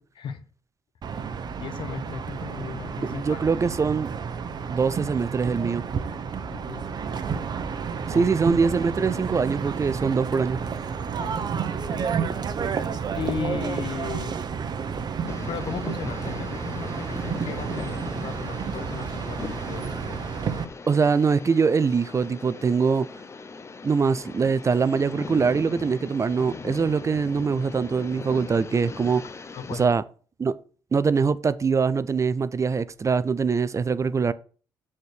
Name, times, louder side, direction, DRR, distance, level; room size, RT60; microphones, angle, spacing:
sound 1, 1.0-20.6, right 6 dB, 50° right, 0.9 m, -31 dB
voice 1, 1.6-3.5 6.5-6.9 8.0-8.3 11.2-11.3 11.9-12.3 12.6-14.4 15.5-20.2 29.5-30.0, left 8 dB, 65° left, 1.0 m, -36 dB
voice 2, 3.1-4.1 4.7-5.8 8.1-10.6 20.9-23.1 23.8-29.2 29.8-30.0 30.4-30.5 30.9-34.3, right 5 dB, 35° right, 0.5 m, -23 dB
sound 2, 15.3-29.9, left 4 dB, 30° left, 0.7 m, -39 dB
6.5 x 4.3 x 6.4 m
supercardioid pair, 60°, 9 cm